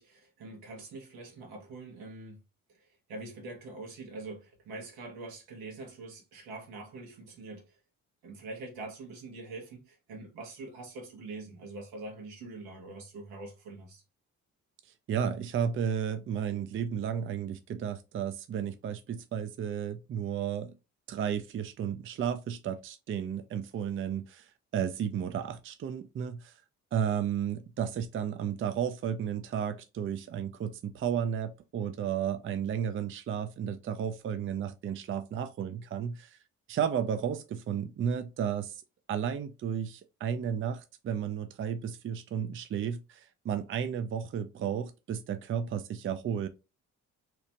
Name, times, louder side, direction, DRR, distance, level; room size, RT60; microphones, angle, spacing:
voice 1, 0.0-2.4 3.1-7.8 8.2-14.0, right 2 dB, 80° right, 1.1 m, -44 dB
voice 2, 15.1-20.7 21.1-26.5 26.9-36.4 36.7-38.8 39.1-46.5, right 8 dB, 35° right, 0.4 m, -33 dB
2.9 x 2.1 x 2.7 m
hypercardioid pair, 50°, 35 cm